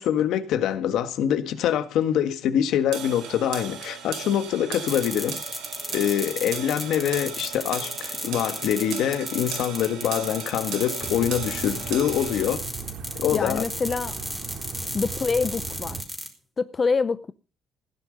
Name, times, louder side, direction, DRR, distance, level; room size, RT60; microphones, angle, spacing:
voice 1, 0.0-5.4 5.9-12.7 13.1-13.6, left 10 dB, 70° left, 1.6 m, -25 dB
sound 1, 2.9-12.5, right 8 dB, 85° right, 5.2 m, -37 dB
sound 2, 4.9-16.3, equal, ahead, 3.1 m, -34 dB
sound 3, 11.0-16.0, right 6 dB, 55° right, 2.6 m, -38 dB
voice 2, 13.3-14.2 14.9-16.1 16.6-17.3, left 4 dB, 25° left, 0.6 m, -26 dB
16.5 x 9.7 x 5.2 m
cardioid pair, 170°, 0 cm